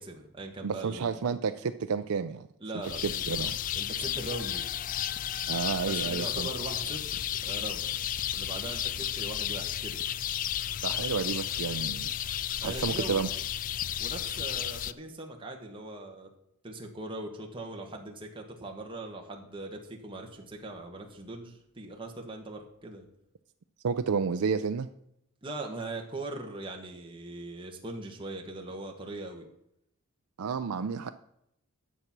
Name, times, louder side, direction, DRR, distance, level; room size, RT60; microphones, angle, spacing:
voice 1, 0.0-1.1 2.6-3.2 3.7-4.6 5.8-7.1 7.4-8.0 8.3-10.0 12.6-13.2 14.0-16.3 16.6-23.1 25.4-29.5, right 2 dB, 25° right, 1 dB, 1.4 m, -40 dB
voice 2, 0.6-2.5 3.3-3.6 5.5-6.5 10.8-12.1 12.6-13.3 23.8-24.9 30.4-31.1, right 5 dB, 85° right, 8 dB, 0.5 m, -30 dB
sound 1, 2.8-14.9, left 11 dB, 40° left, 0.3 m, -33 dB
11.0 x 7.3 x 6.0 m, 0.79 s
head